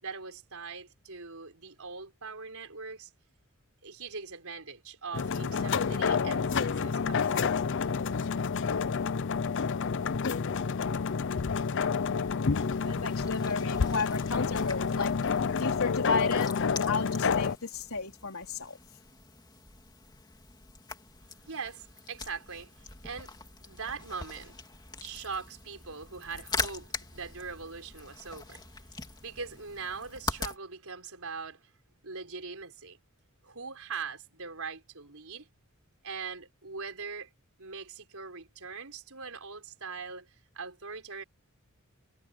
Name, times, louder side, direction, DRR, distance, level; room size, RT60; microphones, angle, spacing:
voice 1, 0.0-3.1 3.8-7.5 8.0-8.1 21.4-23.3 23.6-24.6 25.0-28.6 28.9-31.7 32.0-33.0 33.4-35.5 36.0-37.3 37.6-40.3 40.5-41.2, right 5 dB, 75° right, 4.5 m, -41 dB
sound 1, 5.1-17.6, left 5 dB, 55° left, 0.5 m, -29 dB
sound 2, 12.5-30.6, left 3 dB, 20° left, 2.8 m, -42 dB
voice 2, 12.6-15.2 15.6-16.5 16.9-18.8, left 4 dB, 70° left, 4.1 m, -34 dB
head